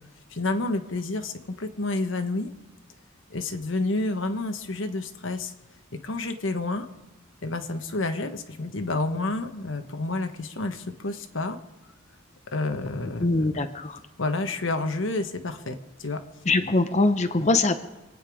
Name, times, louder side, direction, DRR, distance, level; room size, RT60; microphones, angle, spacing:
voice 1, 0.3-2.5 3.3-5.5 5.9-6.9 7.4-11.6 12.5-13.5 14.2-16.2, left 2 dB, 90° left, 7 dB, 1.3 m, -29 dB
voice 2, 13.2-14.0 16.5-17.8, left 2 dB, 35° left, 8 dB, 0.8 m, -22 dB
26.0 x 9.1 x 5.0 m, 1.1 s
head